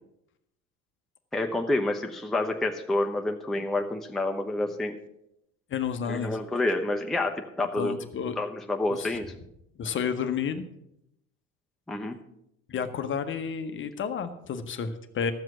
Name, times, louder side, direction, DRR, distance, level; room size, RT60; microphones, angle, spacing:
voice 1, 1.3-5.0 6.0-7.9 8.4-9.3 11.9-12.2, left 2 dB, ahead, 3 dB, 0.8 m, -28 dB
voice 2, 5.7-6.4 7.8-8.4 8.9-9.2 9.8-10.7 12.7-15.3, left 7 dB, 30° left, 9 dB, 0.9 m, -31 dB
13.0 x 7.7 x 6.1 m, 0.81 s
figure-of-eight pair, 65°, 42 cm